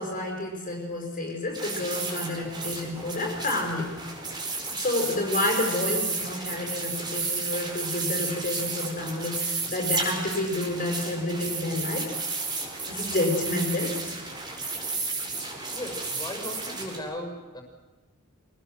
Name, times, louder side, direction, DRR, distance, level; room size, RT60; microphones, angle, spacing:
voice 1, 0.0-4.0 4.7-12.2 12.9-14.0, left 1 dB, 40° left, 2 dB, 5.3 m, -29 dB
sound 1, 1.5-17.0, right 3 dB, 20° right, 5.1 m, -32 dB
voice 2, 15.7-17.6, left 1 dB, 20° left, 3 dB, 6.1 m, -37 dB
25.5 x 19.0 x 7.7 m, 1.2 s
head